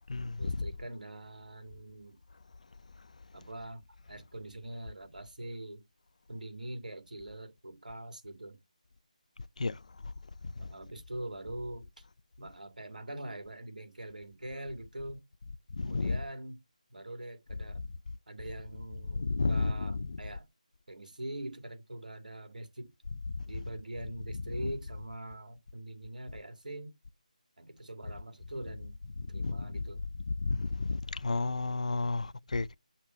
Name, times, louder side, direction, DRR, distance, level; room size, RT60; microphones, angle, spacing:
voice 1, 0.4-2.2 3.3-5.8 6.3-8.6 10.6-12.1 12.4-15.3 15.8-16.6 16.9-17.9 18.3-20.5 20.9-22.9 23.5-26.9 27.6-28.9 29.2-30.0, right 1 dB, 90° right, 2.3 m, -43 dB
voice 2, 15.8-16.2 19.1-20.2 29.4-29.7 30.4-32.8, left 3 dB, 60° left, 0.4 m, -31 dB
6.7 x 2.9 x 5.6 m
figure-of-eight pair, 170°, 4 cm